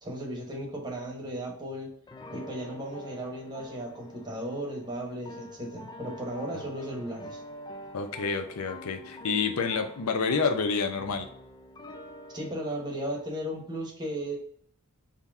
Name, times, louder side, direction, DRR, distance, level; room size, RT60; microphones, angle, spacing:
voice 1, 0.0-1.9 2.3-7.4 12.3-14.4, right 1 dB, 20° right, 0 dB, 1.1 m, -35 dB
sound 1, 2.1-13.3, left 1 dB, 20° left, 0.3 m, -46 dB
voice 2, 7.9-11.3, left 5 dB, 70° left, 6 dB, 0.6 m, -28 dB
3.7 x 2.8 x 3.5 m, 0.63 s
head